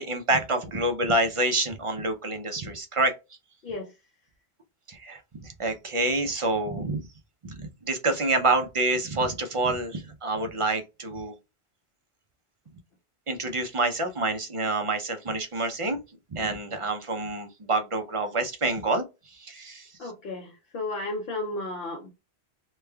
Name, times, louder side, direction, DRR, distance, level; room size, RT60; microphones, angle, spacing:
voice 1, 0.0-3.1 4.9-7.0 7.4-11.3 13.3-16.0 16.3-20.1, right 2 dB, 40° right, 0.5 m, -27 dB
voice 2, 20.0-22.1, left 2 dB, 65° left, 0.8 m, -33 dB
3.2 x 2.2 x 3.3 m
omnidirectional pair, 1.1 m